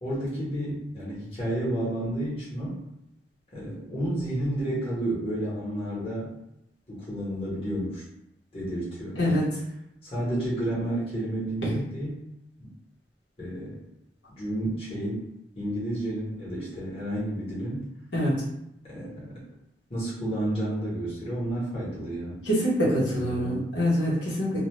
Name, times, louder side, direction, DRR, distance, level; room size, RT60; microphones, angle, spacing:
voice 1, 0.0-2.8 3.5-6.3 6.9-8.0 8.5-9.4 10.0-12.3 12.6-12.7 13.4-13.8 14.4-15.3 15.5-17.9 18.8-19.4 19.9-22.4 23.1-23.7, right 1 dB, 30° left, -8 dB, 1.2 m, -31 dB
voice 2, 22.4-24.6, equal, 90° left, -7 dB, 1.0 m, -25 dB
2.5 x 2.2 x 3.2 m, 0.83 s
head